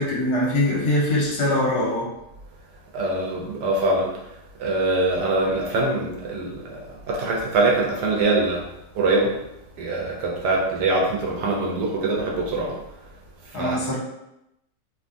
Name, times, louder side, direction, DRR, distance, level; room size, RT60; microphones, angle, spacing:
voice 1, 0.0-2.1 13.5-14.0, left 1 dB, 65° left, -4 dB, 1.2 m, -22 dB
voice 2, 2.9-4.1 4.6-6.8 7.1-8.6 8.9-9.3 9.8-12.8 13.6-13.8, right 2 dB, 75° right, -2 dB, 1.2 m, -23 dB
3.0 x 2.3 x 2.5 m, 0.85 s
omnidirectional pair, 1.9 m